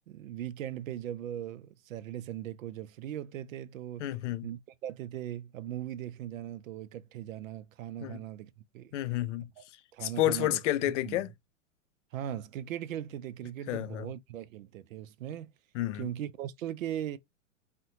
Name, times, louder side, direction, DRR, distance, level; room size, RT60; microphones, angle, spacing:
voice 1, 0.1-4.1 4.4-9.0 9.6-9.7 9.9-10.6 11.0-11.2 12.1-15.5 16.0-17.2, right 11 dB, 80° right, 0.5 m, -39 dB
voice 2, 4.0-4.5 8.0-8.2 8.9-9.5 10.0-11.3 13.7-14.1 15.7-16.1, left 14 dB, 65° left, 0.5 m, -30 dB
3.4 x 2.2 x 2.7 m
hypercardioid pair, 115°, 39 cm